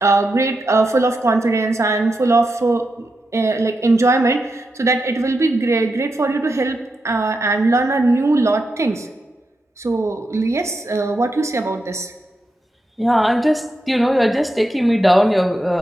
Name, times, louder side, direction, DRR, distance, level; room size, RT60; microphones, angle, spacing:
voice 1, 0.0-9.1 9.8-12.1, right 2 dB, 70° right, 7 dB, 0.8 m, -19 dB
voice 2, 13.0-15.8, equal, ahead, 9 dB, 0.7 m, -17 dB
15.5 x 8.2 x 3.1 m, 1.3 s
wide cardioid pair, 55°, 5 cm